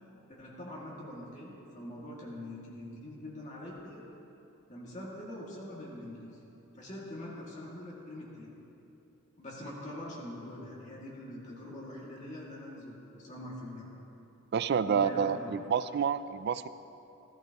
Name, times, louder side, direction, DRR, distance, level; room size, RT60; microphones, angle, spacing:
voice 1, 0.3-4.1 4.7-6.4 6.7-8.5 9.4-13.9 14.9-15.6, left 1 dB, 35° left, -5 dB, 2.1 m, -44 dB
voice 2, 14.5-16.7, right 7 dB, 50° right, 14 dB, 0.3 m, -29 dB
16.5 x 15.0 x 3.0 m, 3.0 s
head